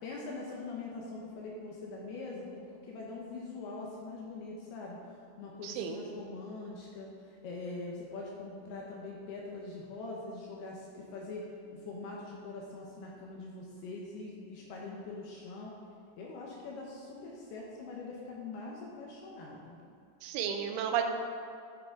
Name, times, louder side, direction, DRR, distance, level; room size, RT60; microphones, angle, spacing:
voice 1, 0.0-5.0 5.4-7.1 7.4-11.5 11.7-15.7 16.2-19.8, left 3 dB, 75° left, -3 dB, 2.5 m, -43 dB
voice 2, 5.6-6.0 20.2-21.0, right 9 dB, 90° right, 5 dB, 3.2 m, -32 dB
11.5 x 7.7 x 3.7 m, 2.4 s
omnidirectional pair, 5.4 m